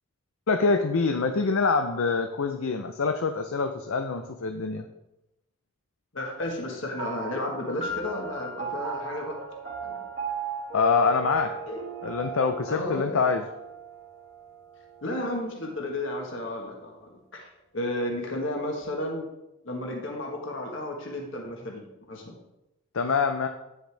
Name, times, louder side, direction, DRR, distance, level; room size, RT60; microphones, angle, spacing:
voice 1, 0.5-4.9 10.7-11.6 12.0-13.4 22.9-23.5, left 4 dB, 80° left, 7 dB, 0.6 m, -25 dB
voice 2, 6.1-9.4 9.8-10.1 11.7-11.8 12.7-13.2 15.0-17.5 17.7-19.3 19.6-22.4, left 1 dB, 65° left, 1 dB, 1.3 m, -33 dB
sound 1, 7.0-15.8, right 4 dB, 35° right, 1.6 m, -37 dB
9.4 x 6.4 x 3.4 m, 0.91 s
head